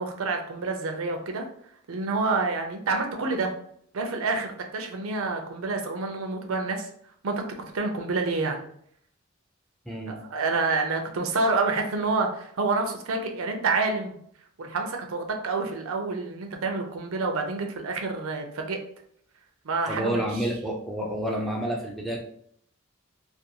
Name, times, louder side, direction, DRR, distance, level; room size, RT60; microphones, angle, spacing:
voice 1, 0.0-1.5 1.9-3.5 3.9-6.9 7.2-7.4 7.7-8.6 10.1-14.2 14.6-18.8 19.6-20.5, right 3 dB, 85° right, 4 dB, 0.5 m, -28 dB
voice 2, 9.9-10.2 19.9-22.2, right 1 dB, ahead, -1 dB, 0.3 m, -29 dB
2.5 x 2.2 x 2.8 m, 0.66 s
head